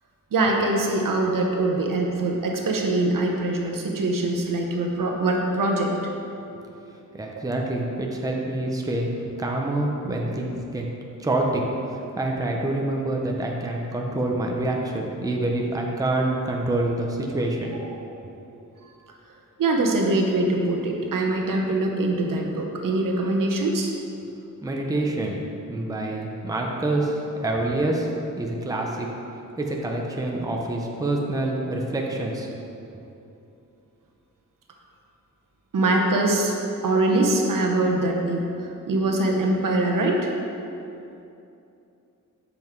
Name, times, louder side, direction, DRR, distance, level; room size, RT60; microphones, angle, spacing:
voice 1, 0.3-6.0 17.7-17.9 18.8-18.9 19.6-23.9 26.9-27.0 35.7-36.5 36.8-40.3, right 2 dB, 70° right, 1 dB, 1.0 m, -23 dB
voice 2, 6.5-9.1 9.4-10.9 11.2-11.6 11.9-17.7 24.6-25.4 25.7-28.1 28.4-29.1 29.6-32.6, right 2 dB, 10° right, 0 dB, 0.6 m, -26 dB
7.6 x 5.5 x 4.6 m, 2.8 s
wide cardioid pair, 150°, 33 cm